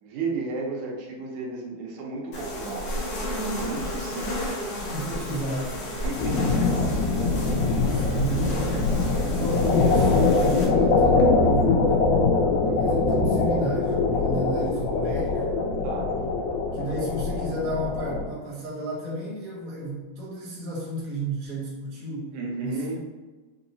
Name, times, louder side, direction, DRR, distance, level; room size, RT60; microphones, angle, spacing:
voice 1, 0.0-3.1 3.4-4.6 6.0-7.7 15.8-16.1 22.3-23.0, right 3 dB, 90° right, -1 dB, 2.3 m, -33 dB
sound 1, 2.3-10.7, equal, 60° left, 1.7 m, -32 dB
voice 2, 4.9-6.0 7.9-12.0 12.7-15.5 16.7-23.0, right 1 dB, 50° right, -7 dB, 1.3 m, -32 dB
sound 2, 6.2-18.2, left 3 dB, 85° left, 2.2 m, -23 dB
5.5 x 2.8 x 2.7 m, 1.3 s
omnidirectional pair, 3.4 m